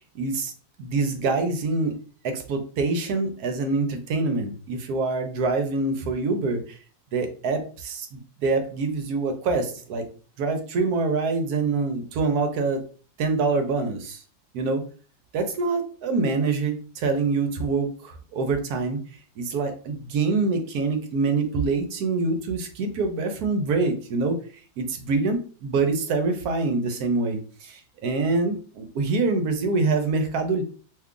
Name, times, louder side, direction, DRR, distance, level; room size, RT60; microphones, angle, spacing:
voice 1, 0.1-0.5 0.8-1.9 2.2-6.8 7.1-10.0 10.4-12.8 13.2-14.2 14.5-14.8 15.3-19.0 19.4-24.4 24.8-30.6, right 3 dB, 70° right, 6 dB, 1.1 m, -25 dB
2.9 x 2.3 x 3.6 m, 0.39 s
omnidirectional pair, 1.7 m